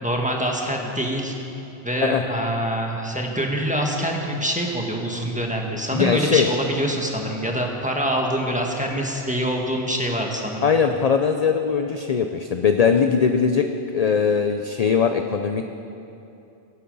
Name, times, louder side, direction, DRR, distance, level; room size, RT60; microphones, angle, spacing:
voice 1, 0.0-1.3 1.8-10.7, equal, 5° right, 0 dB, 1.5 m, -25 dB
voice 2, 5.9-6.5 10.6-15.6, left 6 dB, 45° left, 6 dB, 0.5 m, -20 dB
24.0 x 8.5 x 5.4 m, 2.8 s
omnidirectional pair, 1.2 m